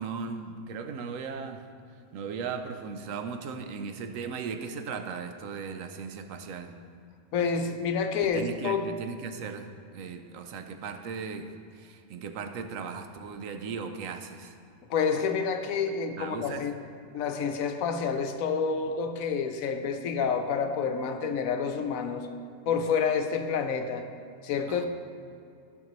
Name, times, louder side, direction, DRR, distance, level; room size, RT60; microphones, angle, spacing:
voice 1, 0.0-1.6 2.1-6.8 8.2-11.5 11.7-14.6 16.2-16.7 24.7-24.9, right 5 dB, 70° right, 7 dB, 1.0 m, -37 dB
voice 2, 7.3-8.9 14.9-16.7 17.1-22.3 22.7-24.1 24.4-24.9, left 6 dB, 70° left, 7 dB, 1.1 m, -28 dB
14.0 x 5.9 x 3.1 m, 2.5 s
omnidirectional pair, 1.5 m